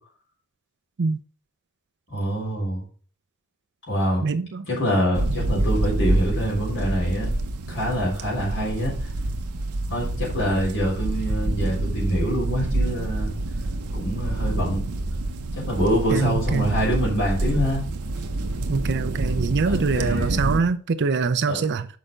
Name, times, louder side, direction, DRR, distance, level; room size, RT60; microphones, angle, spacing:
voice 1, 2.1-2.8 3.9-4.3 4.7-7.3 7.7-9.0 9.9-13.3 13.9-14.8 15.5-17.8 19.7-20.4 21.5-21.6, equal, 60° left, 3.7 m, -25 dB
voice 2, 4.2-4.7 16.1-16.7 18.7-21.9, right 4 dB, 50° right, 0.5 m, -24 dB
sound 1, 5.1-20.6, right 2 dB, 75° right, 0.8 m, -27 dB
6.6 x 5.0 x 5.1 m
head